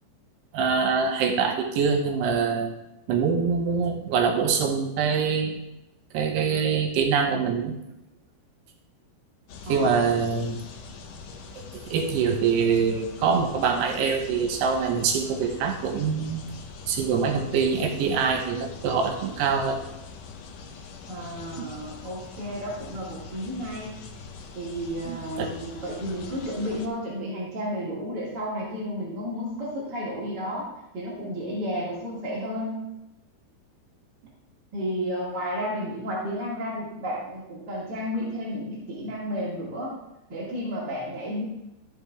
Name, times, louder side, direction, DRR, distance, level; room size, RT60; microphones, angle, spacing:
voice 1, 0.5-2.7 3.1-5.6 6.1-7.7 9.7-10.6 11.6-16.4 16.9-19.8 21.6-21.7 25.1-25.5, right 5 dB, 75° right, 4 dB, 3.0 m, -24 dB
sound 1, 9.5-26.9, left 5 dB, 85° left, 1.8 m, -43 dB
voice 2, 9.7-10.1 21.1-24.0 24.5-32.9 34.7-40.0 40.3-41.4, equal, 40° right, -7 dB, 1.7 m, -32 dB
13.0 x 7.3 x 3.6 m, 0.91 s
omnidirectional pair, 5.0 m